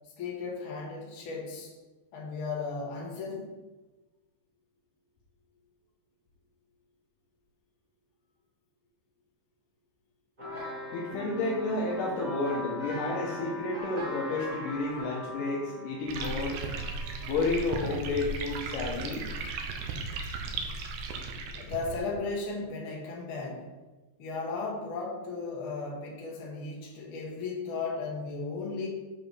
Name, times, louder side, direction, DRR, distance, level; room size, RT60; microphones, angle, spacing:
voice 1, 0.2-1.7 2.1-3.5 21.6-23.6 24.2-28.9, left 4 dB, 50° left, -3 dB, 1.8 m, -35 dB
sound 1, 10.4-18.1, left 1 dB, 55° right, 0.4 m, -40 dB
voice 2, 10.9-16.6 17.2-19.3, left 2 dB, 70° left, -2 dB, 2.4 m, -31 dB
sound 2, 16.1-22.0, right 3 dB, 75° right, 2.3 m, -36 dB
7.9 x 4.8 x 4.9 m, 1.2 s
omnidirectional pair, 4.3 m